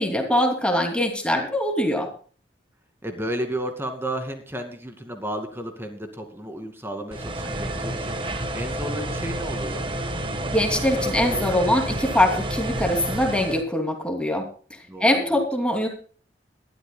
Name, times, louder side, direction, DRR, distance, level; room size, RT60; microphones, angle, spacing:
voice 1, 0.0-2.1 10.5-15.9, left 1 dB, 5° left, 3 dB, 2.8 m, -23 dB
voice 2, 3.0-9.9 14.9-15.4, right 1 dB, 15° right, 6 dB, 2.3 m, -33 dB
sound 1, 7.1-13.6, right 1 dB, 30° right, 1.4 m, -29 dB
21.5 x 12.5 x 2.3 m, 0.41 s
head